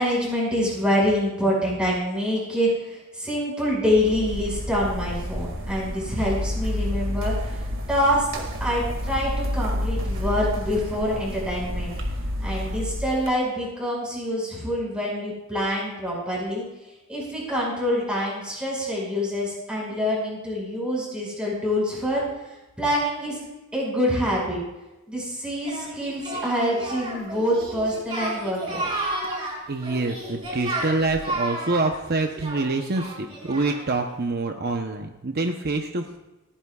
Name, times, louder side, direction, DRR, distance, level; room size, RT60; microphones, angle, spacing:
voice 1, 0.0-11.9 12.4-16.6 17.1-22.2 22.8-23.4 23.7-24.6 25.1-28.9, equal, 5° right, -5 dB, 5.7 m, -26 dB
sound 1, 3.9-13.3, left 1 dB, 65° right, 2.1 m, -29 dB
Singing, 25.6-34.0, right 2 dB, 25° right, 5.4 m, -32 dB
voice 2, 29.7-36.2, right 3 dB, 50° right, 4 dB, 0.8 m, -26 dB
29.0 x 10.0 x 2.4 m, 1.0 s
head